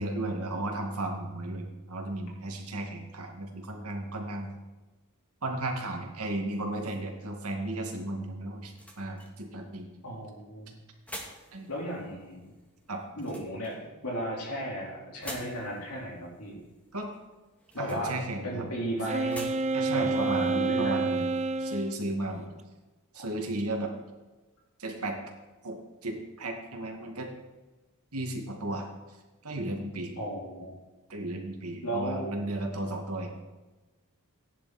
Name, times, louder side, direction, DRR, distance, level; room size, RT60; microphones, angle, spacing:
voice 1, 0.0-4.5 5.4-9.9 11.5-11.7 12.9-13.0 16.9-17.1 17.8-18.7 19.7-21.3 21.6-22.4 23.1-23.9 24.8-25.2 25.6-25.8 26.0-27.3 28.1-28.9 29.4-30.1 31.1-33.3, right 1 dB, 75° right, 2 dB, 2.3 m, -34 dB
sound 1, 8.5-21.4, equal, 5° left, 2.1 m, -50 dB
voice 2, 10.0-10.8 11.7-12.5 13.2-16.6 17.7-19.5 19.9-21.0 30.2-30.8 31.8-32.4, right 1 dB, 80° left, -3 dB, 4.4 m, -35 dB
Wind instrument woodwind instrument, 19.1-22.0, right 3 dB, 30° right, 0.6 m, -28 dB
16.0 x 10.5 x 4.4 m, 1.2 s
head